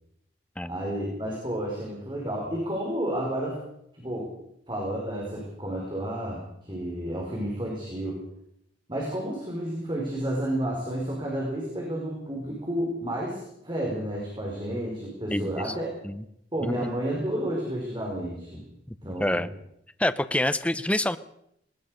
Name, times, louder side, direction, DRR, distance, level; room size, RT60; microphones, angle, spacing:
voice 1, 0.7-3.6 3.9-4.3 4.7-8.2 8.9-15.9 16.5-18.6 19.0-19.4, right 1 dB, 25° right, -2 dB, 5.4 m, -31 dB
voice 2, 15.3-15.7 16.0-16.2 16.6-16.9 18.9-19.5 20.0-21.2, left 1 dB, 5° left, 12 dB, 0.8 m, -27 dB
20.0 x 19.5 x 6.7 m, 0.76 s
head